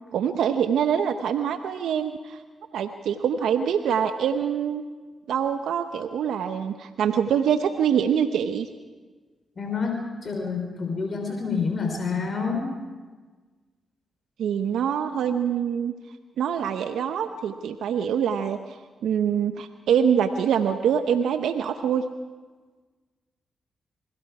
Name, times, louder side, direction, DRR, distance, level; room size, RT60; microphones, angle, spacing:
voice 1, 0.1-2.4 2.7-4.8 5.3-8.7 14.4-15.9 16.4-18.8 19.0-22.1, right 8 dB, 80° right, 9 dB, 0.8 m, -24 dB
voice 2, 9.6-12.7, left 5 dB, 50° left, 3 dB, 3.8 m, -28 dB
27.5 x 21.5 x 4.8 m, 1.4 s
hypercardioid pair, 40°, 0 cm